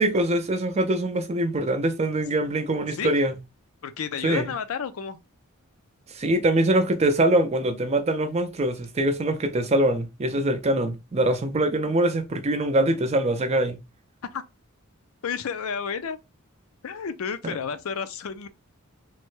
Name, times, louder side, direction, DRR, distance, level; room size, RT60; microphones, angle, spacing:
voice 1, 0.0-3.4 4.2-4.5 6.1-13.8 17.4-17.5, right 1 dB, 30° right, 0.4 m, -23 dB
voice 2, 3.8-5.2 14.3-14.4 15.2-16.2 16.8-18.5, left 6 dB, 70° left, 0.4 m, -31 dB
3.1 x 2.1 x 3.1 m
head